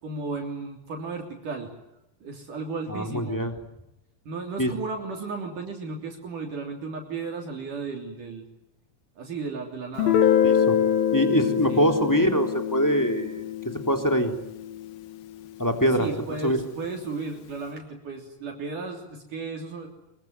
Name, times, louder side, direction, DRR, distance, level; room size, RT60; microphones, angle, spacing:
voice 1, 0.0-1.7 2.2-3.4 4.3-8.5 9.2-10.2 11.7-11.9 15.9-19.9, right 4 dB, 50° right, 2 dB, 4.5 m, -34 dB
voice 2, 2.9-3.5 4.6-4.7 10.4-10.8 11.1-13.5 13.9-14.3 15.6-16.1 16.4-16.6, equal, 5° left, 5 dB, 2.4 m, -23 dB
Guitar, 10.0-15.5, left 9 dB, 65° left, 3.1 m, -25 dB
25.0 x 24.0 x 9.5 m, 0.86 s
omnidirectional pair, 4.9 m